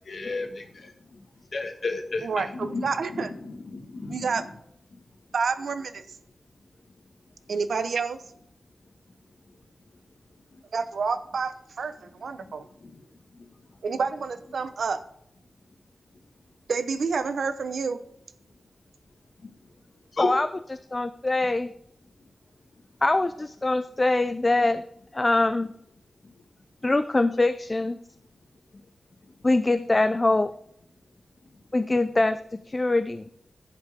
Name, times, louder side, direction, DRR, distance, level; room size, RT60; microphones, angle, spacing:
voice 1, 0.1-0.9 1.5-4.3 12.4-12.5 12.8-13.0 19.4-19.5 20.1-20.3, left 3 dB, 55° left, 4 dB, 1.5 m, -33 dB
voice 2, 2.2-3.3 4.1-4.4 5.3-6.0 7.5-8.2 10.7-12.6 13.8-15.0 16.7-18.0, right 5 dB, 90° right, 10 dB, 0.8 m, -28 dB
voice 3, 20.9-21.7 23.0-24.8 25.1-25.7 26.8-28.0 29.4-30.5 31.7-32.4 32.7-33.3, left 2 dB, 25° left, 10 dB, 0.4 m, -23 dB
15.5 x 5.8 x 3.5 m, 0.72 s
wide cardioid pair, 140°, 0 cm